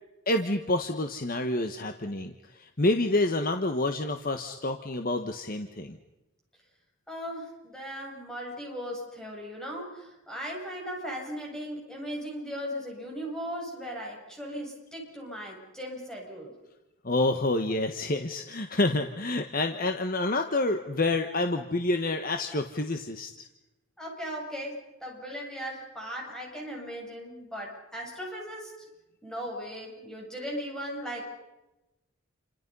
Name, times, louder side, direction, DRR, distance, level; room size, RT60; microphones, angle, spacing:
voice 1, 0.3-2.3 2.6-6.0 17.0-23.3, left 2 dB, 40° left, 6 dB, 1.4 m, -28 dB
voice 2, 7.1-16.5 24.0-28.8 29.2-31.2, equal, 5° left, -2 dB, 7.9 m, -38 dB
29.5 x 26.5 x 5.6 m, 1.0 s
head